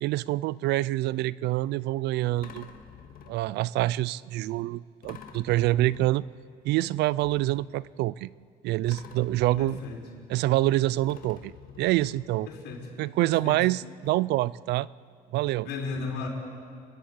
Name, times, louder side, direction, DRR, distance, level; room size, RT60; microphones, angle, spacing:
voice 1, 0.0-2.7 3.3-6.2 6.6-8.3 8.6-9.8 10.3-11.5 11.8-12.5 13.0-14.9 15.3-15.7, right 16 dB, 80° right, 21 dB, 0.5 m, -26 dB
sound 1, 1.1-1.2 2.4-3.7 5.0-6.6 7.2-8.5 8.9-10.7 11.0-12.8 13.7-13.8 14.0-14.1, left 7 dB, 60° left, 2.0 m, -49 dB
voice 2, 9.6-10.0 12.5-12.9 13.2-13.6 15.6-16.3, left 4 dB, 90° left, -1 dB, 4.8 m, -35 dB
30.0 x 11.5 x 8.7 m, 2.3 s
cardioid pair, 110°, 17 cm